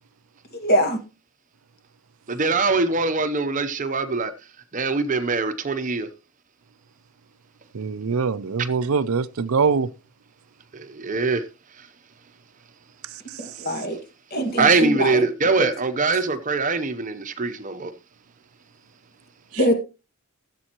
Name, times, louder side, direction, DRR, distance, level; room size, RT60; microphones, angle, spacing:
voice 1, 0.5-1.0 13.4-14.0 14.3-15.3 15.6-15.7 19.6-19.7, equal, 45° left, 1.8 m, -23 dB
voice 2, 2.3-4.3 4.7-6.1 11.0-11.4 14.6-17.9, right 4 dB, 35° right, 0.7 m, -22 dB
voice 3, 7.7-9.9, right 5 dB, 70° right, 0.5 m, -23 dB
15.5 x 7.6 x 3.0 m
head